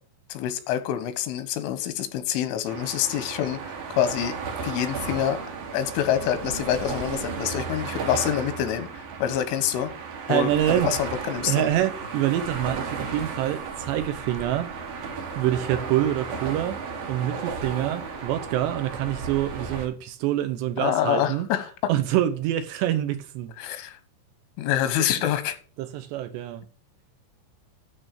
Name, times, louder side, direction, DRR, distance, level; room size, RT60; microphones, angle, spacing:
voice 1, 0.3-4.4 4.6-5.4 5.7-8.9 9.2-9.9 10.3-11.7 20.8-21.7 23.6-24.0 24.6-25.6, left 11 dB, 90° left, 3.6 m, -26 dB
sound 1, 2.7-19.9, right 5 dB, 55° right, 3.6 m, -34 dB
voice 2, 10.3-10.9 11.4-14.8 15.4-16.8 17.1-21.5 21.9-23.7 25.0-25.1 25.8-26.6, right 12 dB, 75° right, 2.8 m, -26 dB
12.5 x 4.3 x 6.7 m
omnidirectional pair, 5.4 m